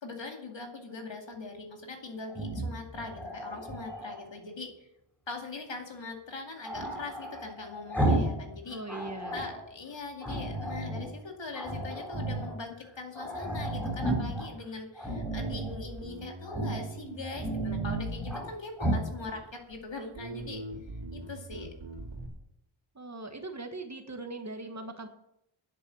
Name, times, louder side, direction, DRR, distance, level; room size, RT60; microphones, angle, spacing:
voice 1, 0.0-4.9 5.3-8.8 9.3-20.6 21.1-21.7, left 3 dB, 60° left, 3 dB, 2.4 m, -41 dB
Growling, 2.3-4.3 6.6-8.4 8.7-9.6 10.2-11.1 11.5-12.5 12.9-13.0 13.2-14.5 15.0-15.7 16.5-16.9 17.2-18.5 18.8-19.1, right 1 dB, 5° left, 4.2 m, -33 dB
voice 2, 8.7-9.4 22.9-25.1, right 2 dB, 35° right, 6 dB, 1.5 m, -40 dB
Bass guitar, 15.1-18.7 19.3-19.8 20.1-22.3, right 2 dB, 70° right, 3.5 m, -41 dB
10.0 x 8.0 x 7.7 m, 0.79 s
wide cardioid pair, 100°, 49 cm